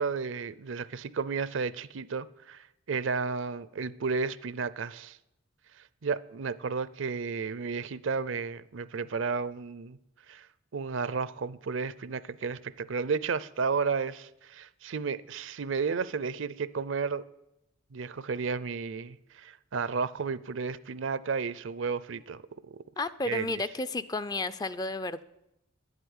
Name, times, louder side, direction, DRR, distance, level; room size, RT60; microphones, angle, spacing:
voice 1, 0.0-5.2 6.0-10.0 10.3-10.5 10.7-17.2 17.9-22.4 22.7-22.8 23.3-23.5, right 5 dB, 65° right, 0.5 m, -32 dB
voice 2, 23.0-25.2, left 2 dB, 20° left, 0.4 m, -32 dB
11.0 x 8.1 x 9.7 m
head